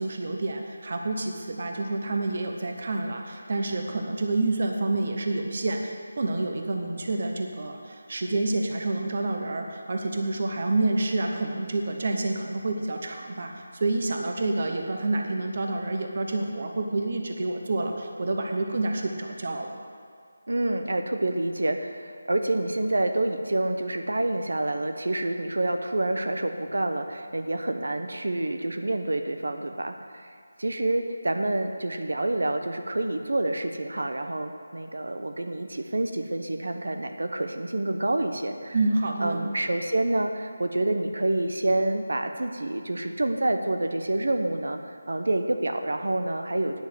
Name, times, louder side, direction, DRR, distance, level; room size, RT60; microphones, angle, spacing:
voice 1, 0.0-19.8 38.7-39.4, right 2 dB, 35° right, 3 dB, 0.9 m, -28 dB
voice 2, 20.5-30.3 30.6-38.8 39.2-46.8, right 1 dB, 85° right, 6 dB, 0.9 m, -28 dB
9.7 x 6.3 x 8.1 m, 2.1 s
figure-of-eight pair, 180°, 0 cm